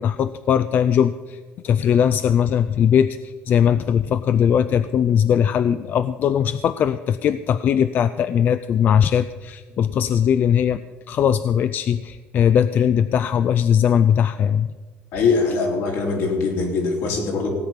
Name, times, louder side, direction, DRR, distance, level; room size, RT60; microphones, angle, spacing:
voice 1, 0.0-1.4 1.6-10.8 11.1-14.7, left 8 dB, 40° left, 13 dB, 0.3 m, -19 dB
voice 2, 15.1-17.5, left 4 dB, 70° left, 1 dB, 3.4 m, -22 dB
17.0 x 8.8 x 5.8 m, 1.4 s
cardioid pair, 170°, 5 cm